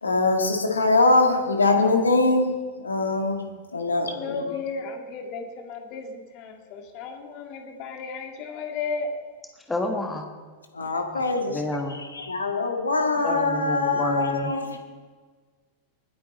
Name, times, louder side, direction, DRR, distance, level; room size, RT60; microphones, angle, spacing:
voice 1, 0.0-2.5 2.8-3.4 3.7-4.4 10.7-11.6 11.9-14.8, left 3 dB, 75° left, 3 dB, 1.9 m, -23 dB
voice 2, 3.9-9.1, left 4 dB, 40° left, 4 dB, 2.2 m, -34 dB
voice 3, 9.7-10.3 11.1-12.0 13.2-14.5, left 1 dB, 10° left, 3 dB, 1.5 m, -29 dB
19.5 x 10.0 x 4.2 m, 1.5 s
figure-of-eight pair, 90°, 0 cm